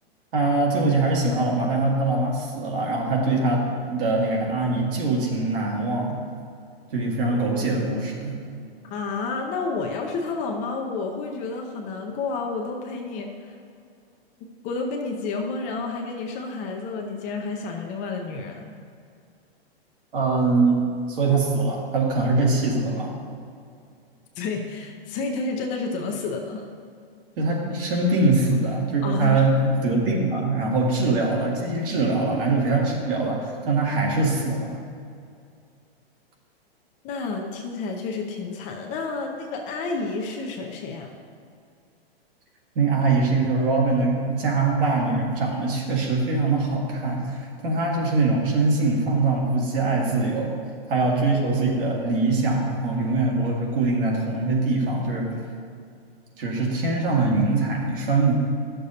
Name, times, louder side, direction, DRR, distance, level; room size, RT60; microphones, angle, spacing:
voice 1, 0.3-6.2 6.9-8.4 20.1-20.8 21.1-23.1 27.4-34.8 42.8-50.5 50.9-55.4 56.4-58.3, right 3 dB, 60° right, -2 dB, 1.9 m, -23 dB
voice 2, 8.8-13.6 14.6-18.7 24.4-26.6 29.0-29.4 37.0-41.1, left 4 dB, 25° left, 2 dB, 0.6 m, -30 dB
11.5 x 6.7 x 2.8 m, 2.3 s
hypercardioid pair, 140°, 31 cm